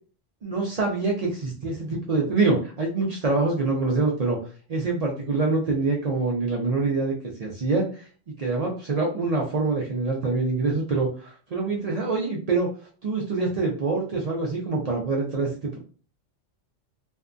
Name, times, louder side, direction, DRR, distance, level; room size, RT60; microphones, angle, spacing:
voice 1, 0.4-4.4 4.7-8.0 8.4-12.7 13.0-15.8, right 3 dB, 75° right, -1 dB, 0.3 m, -25 dB
2.6 x 2.2 x 2.4 m, 0.39 s
omnidirectional pair, 1.3 m